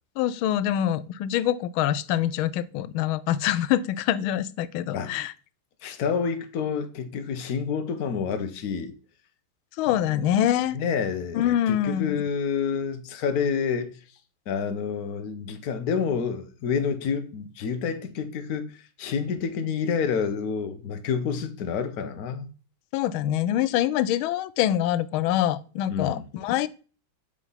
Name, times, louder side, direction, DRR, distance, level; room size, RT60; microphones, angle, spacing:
voice 1, 0.2-5.3 9.8-10.8 11.3-12.2 22.9-26.7, left 11 dB, 80° left, 1.4 m, -25 dB
voice 2, 5.8-8.9 10.1-10.2 10.7-13.9 14.5-18.7 19.0-22.5 25.9-26.2, left 6 dB, 55° left, 1.3 m, -28 dB
6.9 x 4.9 x 5.6 m
omnidirectional pair, 2.3 m